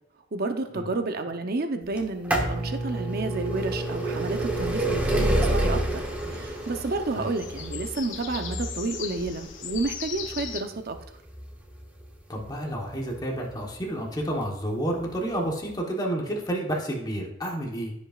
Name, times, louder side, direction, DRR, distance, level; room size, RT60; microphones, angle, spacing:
voice 1, 0.3-6.0 6.3-11.0, right 3 dB, 55° right, 6 dB, 0.8 m, -30 dB
sound 1, 2.0-13.6 14.4-14.5 15.5-15.6 15.8-15.9, right 1 dB, 10° right, 1.1 m, -29 dB
sound 2, 3.6-10.6, left 7 dB, 85° left, 0.8 m, -40 dB
voice 2, 12.3-17.9, right 1 dB, 20° left, 0 dB, 1.2 m, -30 dB
15.5 x 5.3 x 2.5 m, 0.80 s
head